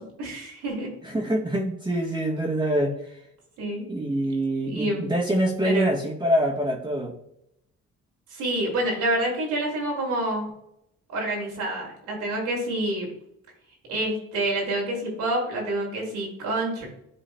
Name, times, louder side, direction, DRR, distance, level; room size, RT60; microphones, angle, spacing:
voice 1, 0.0-0.9 3.6-3.8 4.6-5.1 5.6-5.9 8.3-10.5 11.1-13.1 13.9-16.9, right 1 dB, 90° right, -1 dB, 2.6 m, -27 dB
voice 2, 1.0-3.2 3.9-7.1, right 1 dB, 15° right, -3 dB, 1.2 m, -25 dB
11.5 x 3.9 x 2.2 m, 0.76 s
cardioid pair, 90°, 30 cm